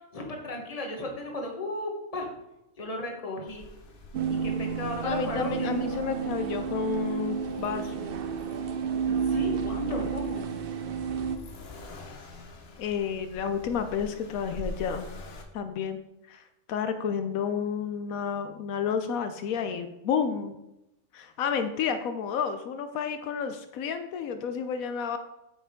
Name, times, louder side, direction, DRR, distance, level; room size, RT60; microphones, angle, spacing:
voice 1, 0.1-2.3 2.8-3.6 4.3-5.7 9.1-10.5, left 2 dB, 25° left, 2 dB, 1.3 m, -35 dB
Accelerating revving vroom, 3.5-15.4, left 2 dB, 50° left, 1.1 m, -45 dB
sound 1, 4.1-11.4, right 6 dB, 60° right, 0.6 m, -31 dB
voice 2, 5.0-8.1 12.8-15.1 15.5-16.0 16.3-16.4 16.7-20.6 21.1-25.2, left 6 dB, 80° left, 8 dB, 1.1 m, -31 dB
8.5 x 5.7 x 3.6 m, 0.91 s
omnidirectional pair, 1.4 m